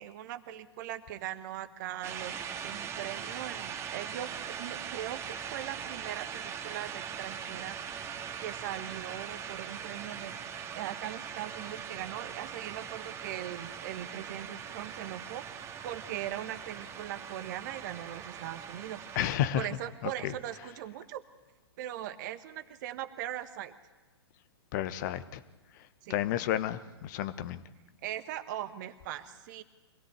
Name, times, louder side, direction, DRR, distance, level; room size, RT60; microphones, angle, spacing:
voice 1, 0.0-7.8 8.4-10.3 10.7-15.4 15.8-19.0 19.5-21.2 21.8-23.7 26.0-26.2 28.0-29.6, right 12 dB, 45° right, 10 dB, 1.4 m, -40 dB
sound 1, 2.0-19.4, right 7 dB, 20° right, 2.0 m, -41 dB
voice 2, 19.1-19.7 20.0-20.3 24.7-25.4 26.1-27.6, left 11 dB, 45° left, 13 dB, 1.1 m, -31 dB
24.5 x 17.5 x 8.4 m, 1.2 s
figure-of-eight pair, 115°, 14 cm